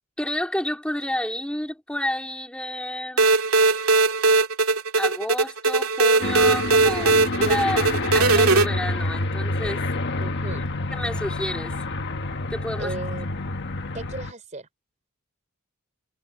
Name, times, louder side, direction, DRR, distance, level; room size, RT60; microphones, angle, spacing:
voice 1, 0.2-3.3 5.0-9.8 10.6-10.7 10.9-11.7 12.5-13.0, left 1 dB, 5° left, 2.2 m, -30 dB
sound 1, 3.2-8.6, right 3 dB, 70° right, 2.6 m, -19 dB
Aircraft, 6.2-14.3, left 2 dB, 50° left, 1.6 m, -28 dB
voice 2, 10.2-10.7 12.8-13.3 13.9-14.7, right 2 dB, 35° right, 3.5 m, -35 dB
head